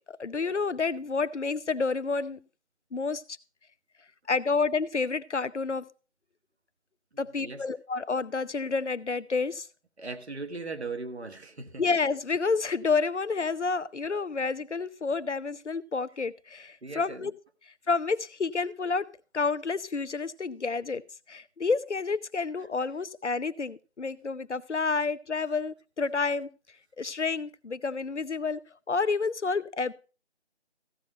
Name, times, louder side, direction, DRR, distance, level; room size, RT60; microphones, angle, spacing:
voice 1, 0.1-2.4 2.9-3.2 4.3-5.9 7.2-9.7 11.8-17.3 17.9-19.1 19.3-21.0 21.3-26.5 27.0-28.6 28.9-29.9, left 4 dB, 80° left, 0.8 m, -29 dB
voice 2, 10.0-11.8 16.8-17.3, right 3 dB, 65° right, 1.5 m, -38 dB
15.0 x 6.5 x 4.2 m
figure-of-eight pair, 160°, 34 cm